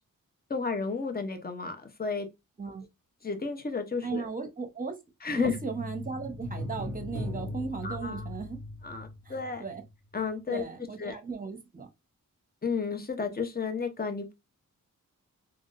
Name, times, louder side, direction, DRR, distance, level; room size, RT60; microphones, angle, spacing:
voice 1, 0.5-2.3 3.2-4.3 5.2-5.6 7.8-8.3 8.8-9.6 10.1-10.6 11.0-11.1 12.6-14.3, left 5 dB, 30° left, 0.8 m, -32 dB
voice 2, 4.0-4.9 5.3-8.6 9.6-9.8 10.5-11.9, right 5 dB, 25° right, 0.9 m, -36 dB
sound 1, 5.4-9.9 10.1-10.2, left 1 dB, 60° left, 1.1 m, -39 dB
3.5 x 2.4 x 2.5 m
cardioid pair, 80°, 32 cm